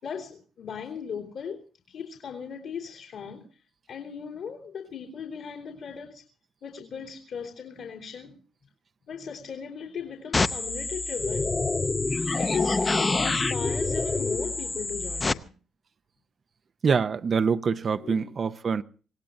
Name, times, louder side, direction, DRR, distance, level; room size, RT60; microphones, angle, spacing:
voice 1, 0.0-3.5 3.9-6.2 6.6-8.4 9.1-11.5 12.3-15.5 18.0-18.3, left 6 dB, 75° left, 3.2 m, -38 dB
sound 1, 10.3-15.3, left 3 dB, 25° left, 0.7 m, -26 dB
voice 2, 16.8-18.8, right 5 dB, 45° right, 0.6 m, -25 dB
26.0 x 17.5 x 2.6 m
cardioid pair, 90°, 0 cm